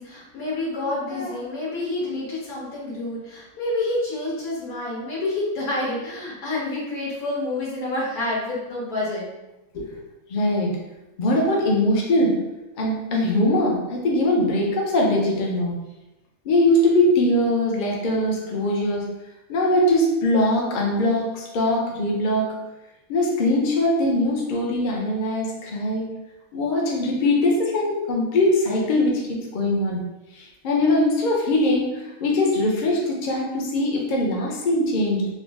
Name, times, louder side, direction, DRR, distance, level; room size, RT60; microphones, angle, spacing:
voice 1, 0.0-9.2 9.7-9.9, left 2 dB, 80° left, -5 dB, 1.6 m, -28 dB
voice 2, 10.3-10.8 11.2-12.3 12.8-15.8 16.4-19.1 19.5-22.5 23.1-26.1 26.5-30.0 30.3-35.3, left 1 dB, 50° left, -1 dB, 0.6 m, -21 dB
3.8 x 2.1 x 3.4 m, 0.99 s
omnidirectional pair, 1.5 m